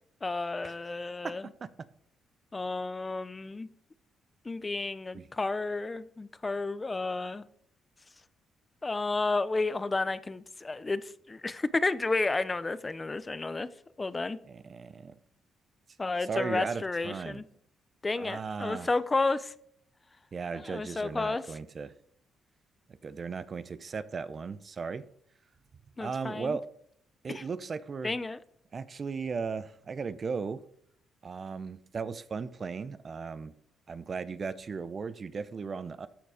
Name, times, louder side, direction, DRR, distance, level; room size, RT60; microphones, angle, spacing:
voice 1, 0.2-1.5 2.5-3.7 4.4-7.4 8.8-13.7 14.0-14.4 16.0-17.4 18.0-19.5 20.5-21.6 26.0-26.6 27.3-27.4 28.0-28.4, left 3 dB, 25° left, 15 dB, 0.7 m, -31 dB
voice 2, 14.5-15.1 16.3-17.4 18.2-18.9 20.3-21.9 22.9-25.0 26.0-26.6 27.2-28.1 28.7-30.6 31.2-33.5 33.9-36.1, right 5 dB, 40° right, 15 dB, 0.7 m, -36 dB
13.5 x 6.8 x 5.0 m, 0.68 s
cardioid pair, 90°, 0 cm